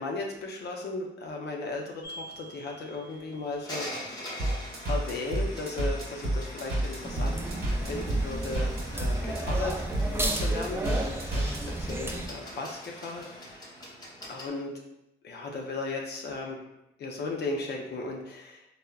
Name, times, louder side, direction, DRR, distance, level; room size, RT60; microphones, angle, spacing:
voice 1, 0.0-3.9 4.9-7.4 7.8-9.8 10.3-13.7 14.3-14.7 15.2-16.6 17.0-18.7, left 3 dB, 55° left, 0 dB, 0.5 m, -36 dB
sound 1, 2.0-14.5, equal, 20° left, 0.8 m, -43 dB
sound 2, 4.4-11.6, right 1 dB, 50° right, 1.1 m, -29 dB
sound 3, 7.0-12.3, right 1 dB, 10° right, 0.3 m, -33 dB
3.4 x 2.0 x 2.3 m, 0.86 s
cardioid pair, 90°, 20 cm